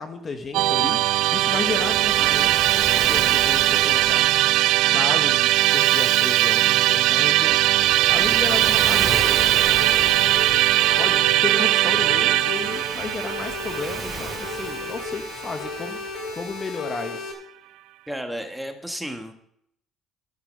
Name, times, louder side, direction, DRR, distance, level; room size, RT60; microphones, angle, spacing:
voice 1, 0.0-2.5 3.1-4.3 4.9-7.6 8.1-9.4 11.0-16.0 16.3-17.4, left 4 dB, 30° left, 7 dB, 1.2 m, -33 dB
Musical instrument, 0.5-15.7, right 16 dB, 75° right, 0.4 m, -20 dB
Waves surf, 1.1-16.6, right 3 dB, 20° right, 2.5 m, -36 dB
sound 1, 9.1-17.3, left 3 dB, 70° left, 3.0 m, -35 dB
voice 2, 18.1-19.3, equal, ahead, 5 dB, 1.3 m, -32 dB
12.5 x 9.6 x 5.3 m, 0.72 s
cardioid pair, 115°, 0 cm